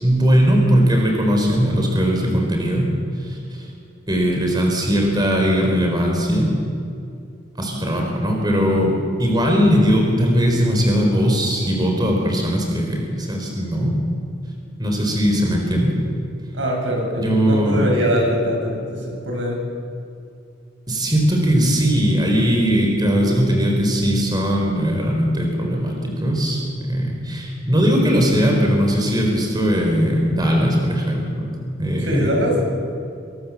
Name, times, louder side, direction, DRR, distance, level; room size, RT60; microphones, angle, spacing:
voice 1, 0.0-2.9 3.2-3.7 4.1-6.5 7.6-13.9 14.8-16.0 17.1-17.9 20.9-31.5 31.8-32.3, equal, 20° right, 1 dB, 4.4 m, -19 dB
voice 2, 16.5-19.6 32.0-32.6, equal, 80° right, 0 dB, 7.9 m, -22 dB
26.5 x 24.0 x 7.6 m, 2.5 s
head